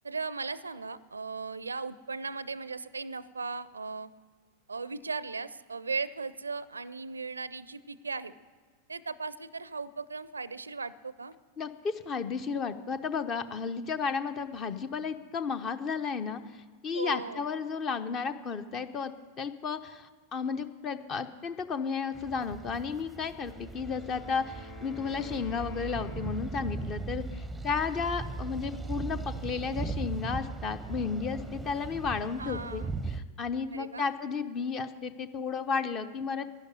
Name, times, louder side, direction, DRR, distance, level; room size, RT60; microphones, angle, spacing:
voice 1, 0.0-4.1 4.7-8.3 8.9-11.3 16.9-17.4 32.4-32.9 33.7-34.1, right 4 dB, 75° right, 19 dB, 0.5 m, -37 dB
voice 2, 11.6-36.5, left 5 dB, 30° left, 11 dB, 0.9 m, -33 dB
sound 1, 22.1-33.2, right 3 dB, 5° right, 0.8 m, -38 dB
Wind instrument woodwind instrument, 23.2-27.1, left 3 dB, 50° left, 3.9 m, -50 dB
12.0 x 11.0 x 9.8 m, 1.5 s
figure-of-eight pair, 90°, 0 cm